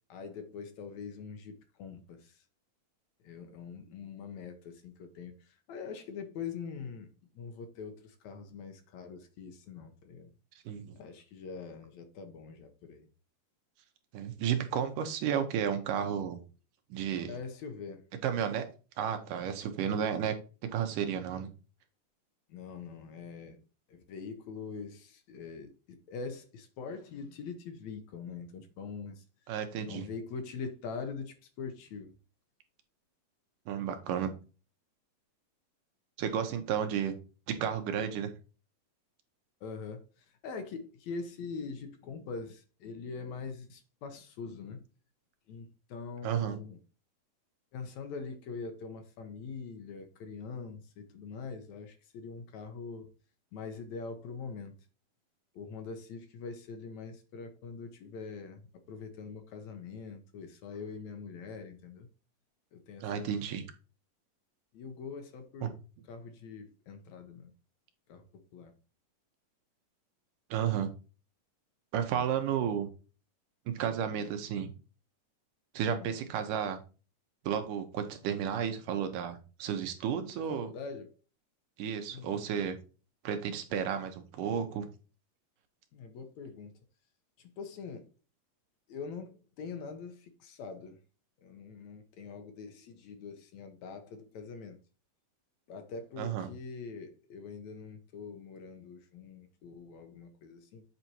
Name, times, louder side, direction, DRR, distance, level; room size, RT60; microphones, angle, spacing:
voice 1, 0.1-2.4 3.2-7.1 7.4-10.3 11.0-13.1 17.3-18.1 22.5-23.6 23.9-29.2 29.8-32.1 39.6-44.9 45.5-46.8 47.7-53.1 53.5-54.8 55.5-62.1 62.7-63.4 64.7-65.8 66.1-67.5 68.1-68.7 75.9-76.1 80.5-81.2 82.1-82.5 85.9-86.7 87.4-88.1 88.9-91.0 91.4-94.8 95.7-100.8, left 5 dB, 65° left, 2.1 m, -43 dB
voice 2, 10.7-11.0 14.1-16.4 16.9-17.3 18.2-18.7 19.0-20.3 20.6-21.5 29.5-30.1 33.7-34.3 36.2-37.2 37.5-38.3 46.2-46.6 63.0-63.6 65.6-65.7 70.5-70.9 71.9-72.9 73.8-74.7 75.7-76.8 77.4-80.7 81.8-82.8 83.2-84.9 96.2-96.5, right 8 dB, 75° right, 2.6 m, -32 dB
8.1 x 4.2 x 4.5 m
omnidirectional pair, 3.9 m